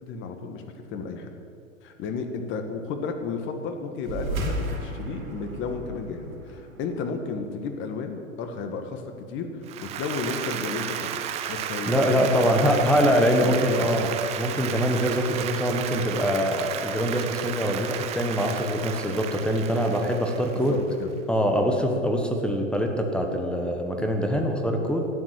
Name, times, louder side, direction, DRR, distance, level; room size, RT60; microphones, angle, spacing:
voice 1, 0.0-0.6 0.9-1.3 1.8-9.0 9.3-11.2 11.5-12.7 12.9-13.9 20.5-21.2, left 4 dB, 30° left, 6 dB, 1.7 m, -33 dB
sound 1, 4.0-8.9, right 1 dB, 85° right, 3.1 m, -34 dB
Applause, 9.7-21.0, right 9 dB, 15° right, 0.5 m, -33 dB
voice 2, 11.9-14.1 14.4-20.8 21.3-25.1, equal, ahead, 3 dB, 1.2 m, -24 dB
13.0 x 9.4 x 9.5 m, 2.6 s
hypercardioid pair, 130°, 41 cm